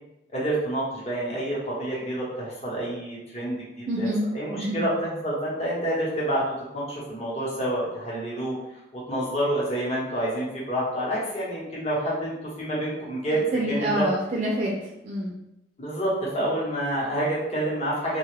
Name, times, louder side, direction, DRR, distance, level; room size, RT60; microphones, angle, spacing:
voice 1, 0.3-4.1 4.3-6.4 6.7-8.5 8.9-13.4 13.7-14.1 15.8-18.2, right 1 dB, 35° left, -6 dB, 0.9 m, -28 dB
voice 2, 3.9-4.9 13.5-15.3, equal, 35° right, -3 dB, 0.4 m, -27 dB
3.3 x 2.3 x 3.3 m, 0.87 s
head